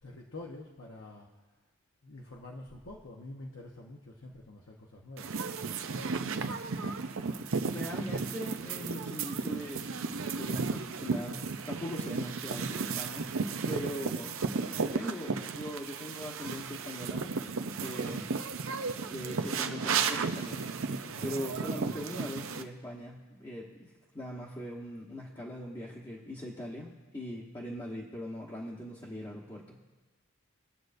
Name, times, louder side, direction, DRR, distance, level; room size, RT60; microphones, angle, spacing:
voice 1, 0.0-1.3 2.0-5.3 21.1-21.9, left 2 dB, 70° left, -1 dB, 1.1 m, -47 dB
sound 1, 5.2-22.6, right 4 dB, 70° right, 0.6 m, -34 dB
voice 2, 7.7-9.9 10.2-13.3 13.7-14.3 14.8-17.3 17.8-18.3 19.1-20.7 21.2-29.8, equal, 20° left, -5 dB, 1.1 m, -41 dB
23.5 x 7.9 x 2.6 m, 1.3 s
head